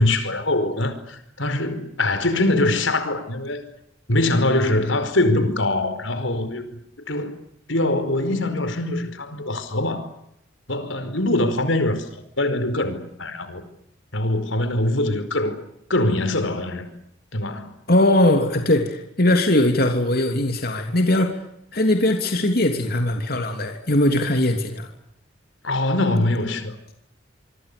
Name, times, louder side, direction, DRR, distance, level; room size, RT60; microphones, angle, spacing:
voice 1, 0.0-3.6 4.1-6.6 7.1-7.4 7.7-10.1 10.7-13.6 14.1-15.6 15.9-16.9 17.3-17.7 25.6-26.8, left 2 dB, 85° left, 4.9 m, -23 dB
voice 2, 17.9-21.4 21.7-24.9, left 1 dB, 50° left, 3.2 m, -20 dB
26.5 x 24.5 x 7.0 m
head